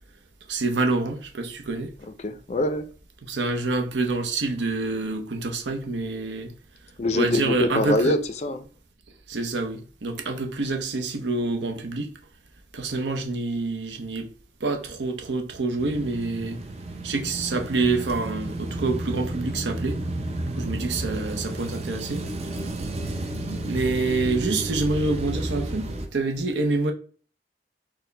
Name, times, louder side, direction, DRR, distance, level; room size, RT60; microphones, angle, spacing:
voice 1, 0.5-1.9 3.2-6.5 7.1-8.1 9.3-12.1 12.7-14.3 14.6-16.6 17.0-20.0 20.5-22.3 23.7-26.9, right 3 dB, 80° right, 0.7 m, -27 dB
voice 2, 2.2-2.8 7.0-8.7, left 2 dB, 40° left, 0.4 m, -24 dB
sound 1, 15.8-26.1, right 1 dB, 35° right, 0.5 m, -32 dB
4.4 x 2.1 x 3.2 m
head